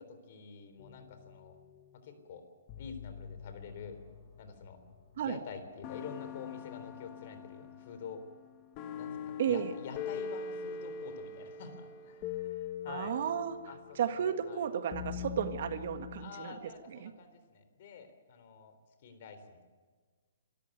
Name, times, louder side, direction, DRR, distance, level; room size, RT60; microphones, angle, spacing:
voice 1, 0.1-1.6 2.0-2.4 2.8-4.0 4.4-4.8 5.2-8.2 9.0-13.1 13.7-14.7 16.2-18.7 19.0-19.6, left 5 dB, 45° left, 8 dB, 3.7 m, -47 dB
sound 1, 0.8-2.0 2.7-5.3 5.8-16.3, left 7 dB, 30° left, 1.4 m, -43 dB
voice 2, 9.4-9.7 12.9-13.5 13.9-16.5 17.0-17.1, right 8 dB, 50° right, 9 dB, 1.7 m, -33 dB
25.0 x 13.5 x 9.3 m, 1.4 s
hypercardioid pair, 160°, 0 cm